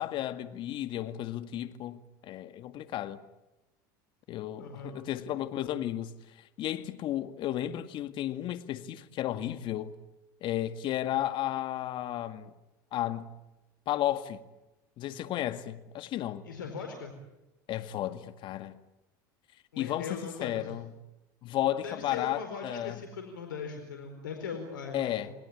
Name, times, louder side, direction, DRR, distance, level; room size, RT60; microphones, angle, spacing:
voice 1, 0.0-3.2 4.3-9.9 10.4-12.5 12.9-13.3 13.9-14.4 15.0-16.4 17.7-18.8 19.8-20.9 21.4-23.0 24.9-25.3, left 12 dB, 50° left, 1.9 m, -33 dB
voice 2, 4.6-4.9 16.4-17.1 19.7-20.7 21.8-25.3, left 5 dB, 85° left, 4.5 m, -40 dB
29.5 x 20.5 x 8.8 m
hypercardioid pair, 90°, 10 cm